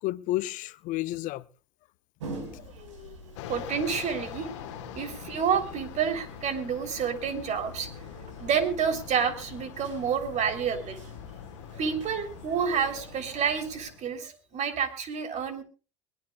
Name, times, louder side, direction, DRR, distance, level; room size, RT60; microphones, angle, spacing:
voice 1, 0.0-1.5 2.5-3.4, left 16 dB, 60° left, 0.8 m, -33 dB
sound 1, 2.2-13.9, right 2 dB, 85° right, 5.1 m, -47 dB
Fixed-wing aircraft airplane, 3.4-14.2, left 12 dB, 75° left, 1.4 m, -44 dB
voice 2, 3.5-7.9 8.4-11.0 11.8-15.6, right 7 dB, 50° right, 3.4 m, -29 dB
22.0 x 19.5 x 2.4 m
hypercardioid pair, 70°, 15 cm